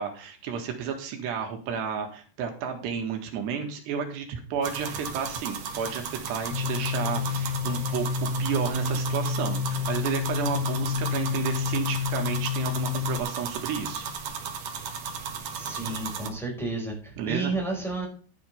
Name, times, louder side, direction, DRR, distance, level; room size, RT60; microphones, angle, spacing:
voice 1, 0.0-8.1 8.4-14.0 17.2-17.5, right 7 dB, 85° right, 3 dB, 3.9 m, -32 dB
sound 1, 4.6-16.3, right 6 dB, 60° right, 2.7 m, -35 dB
sound 2, 6.5-13.2, left 6 dB, 80° left, 5.5 m, -29 dB
voice 2, 15.6-18.0, right 3 dB, ahead, -2 dB, 4.7 m, -31 dB
11.5 x 10.5 x 3.6 m, 0.39 s
omnidirectional pair, 4.8 m